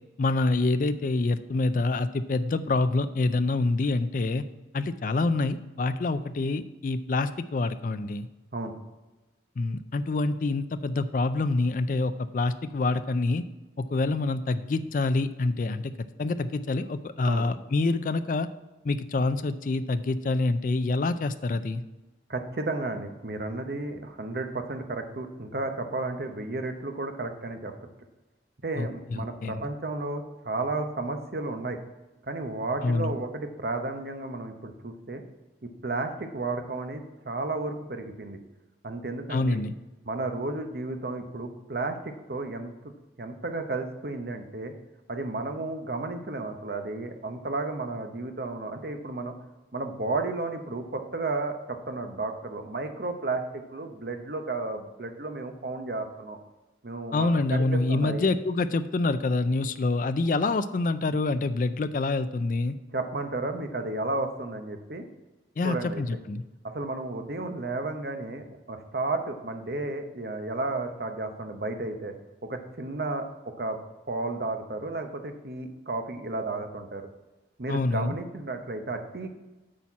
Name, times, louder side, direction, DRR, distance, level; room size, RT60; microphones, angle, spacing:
voice 1, 0.2-4.4 4.7-8.3 9.6-13.4 13.8-15.9 16.2-18.5 18.8-21.8 28.8-29.6 32.8-33.1 39.3-39.7 57.1-62.7 65.6-66.4 77.7-78.1, left 3 dB, 45° left, 12 dB, 0.4 m, -26 dB
voice 2, 22.3-27.7 28.6-31.8 32.2-35.2 35.6-38.4 38.8-39.6 40.0-42.7 43.2-44.7 45.1-49.3 49.7-53.4 53.7-56.4 56.8-58.3 62.9-65.1 65.6-66.2 66.6-72.1 72.5-73.3 73.6-73.8 74.1-77.0 77.6-79.4, right 2 dB, 60° right, 6 dB, 0.8 m, -33 dB
8.6 x 4.3 x 7.2 m, 1.1 s
head